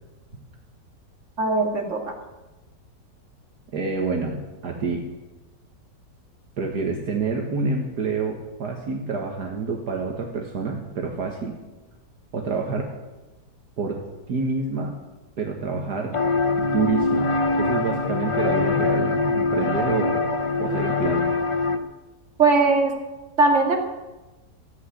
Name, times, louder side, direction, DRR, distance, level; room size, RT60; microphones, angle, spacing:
voice 1, 1.4-2.2 20.6-20.8 22.4-22.9 23.4-23.8, right 3 dB, 40° right, 1 dB, 2.5 m, -20 dB
voice 2, 3.7-5.0 6.6-11.5 12.3-12.9 13.8-14.0 14.3-14.9 15.4-16.1 16.6-20.3 20.6-21.3, right 4 dB, 65° right, 1 dB, 1.9 m, -27 dB
sound 1, 16.1-21.8, left 4 dB, 50° left, 0.3 m, -23 dB
14.5 x 8.2 x 9.8 m, 1.1 s
omnidirectional pair, 1.9 m